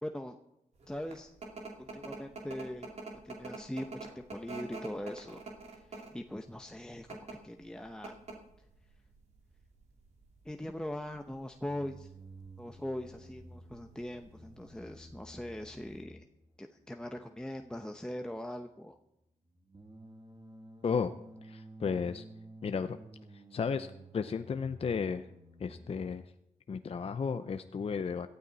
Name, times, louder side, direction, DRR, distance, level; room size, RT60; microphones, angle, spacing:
voice 1, 0.0-0.4 0.9-1.3 1.8-2.9 3.2-5.4 5.7-8.2 10.4-12.1 12.6-16.2 16.6-19.0, left 1 dB, 5° left, 4 dB, 0.9 m, -41 dB
sound 1, 0.8-16.0, right 3 dB, 55° right, 2.7 m, -47 dB
sound 2, 11.7-26.2, right 1 dB, 30° right, 2.4 m, -53 dB
voice 2, 21.4-22.2 22.6-23.0 23.3-23.9 24.1-25.3 25.6-26.2 26.7-28.3, left 6 dB, 45° left, 9 dB, 0.6 m, -33 dB
17.5 x 13.0 x 4.1 m, 0.83 s
cardioid pair, 70°, 14 cm